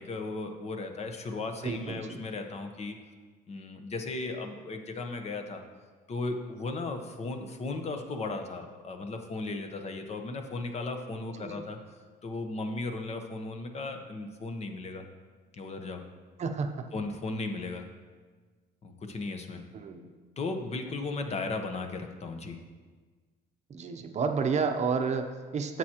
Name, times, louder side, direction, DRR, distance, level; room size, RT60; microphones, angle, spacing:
voice 1, 0.0-3.0 3.5-5.6 6.1-11.8 12.2-15.0 15.5-16.0 16.9-17.8 18.8-19.6 20.4-22.6, left 3 dB, 40° left, 5 dB, 0.9 m, -36 dB
voice 2, 1.6-2.2 11.4-11.6 16.4-16.9 19.7-20.1 23.7-25.8, right 5 dB, 40° right, 6 dB, 0.7 m, -31 dB
11.0 x 7.7 x 2.9 m, 1.4 s
cardioid pair, 110°, 17 cm